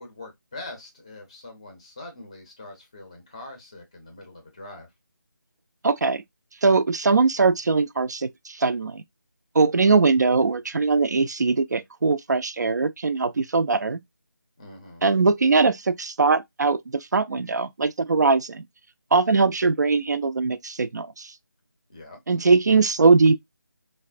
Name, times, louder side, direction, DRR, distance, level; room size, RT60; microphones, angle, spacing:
voice 1, 0.0-4.9 14.6-15.0 21.9-22.2, left 2 dB, 15° left, 0.6 m, -43 dB
voice 2, 5.8-6.2 6.6-9.0 9.5-14.0 15.0-18.6 19.1-21.3 22.3-23.4, right 4 dB, 55° right, 0.4 m, -21 dB
4.0 x 2.1 x 2.3 m
figure-of-eight pair, 175°, 11 cm